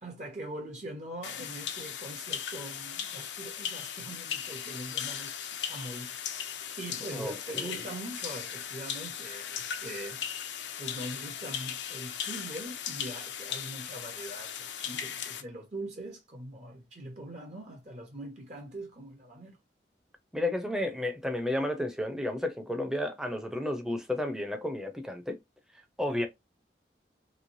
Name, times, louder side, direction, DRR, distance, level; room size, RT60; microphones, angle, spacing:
voice 1, 0.0-6.1 6.8-10.2 10.8-19.6, right 1 dB, 40° right, 0.7 m, -42 dB
sound 1, 1.2-15.4, left 8 dB, 90° left, 0.6 m, -38 dB
voice 2, 7.1-7.8 20.3-25.4 26.0-26.3, left 1 dB, 5° right, 0.5 m, -32 dB
3.2 x 3.1 x 2.6 m
head